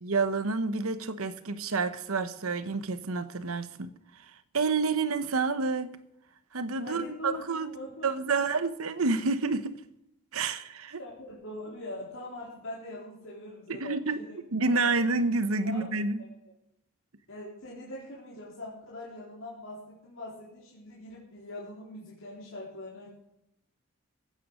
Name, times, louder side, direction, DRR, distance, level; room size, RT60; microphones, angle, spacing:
voice 1, 0.0-3.9 4.5-5.9 6.5-7.7 8.0-9.8 10.3-11.0 13.7-14.2 14.5-16.2, right 4 dB, 80° right, 1.0 m, -29 dB
voice 2, 6.8-8.4 11.0-14.4 14.7-15.1 15.6-16.3 17.3-23.1, left 1 dB, 70° left, 4.0 m, -42 dB
16.0 x 9.5 x 6.4 m
head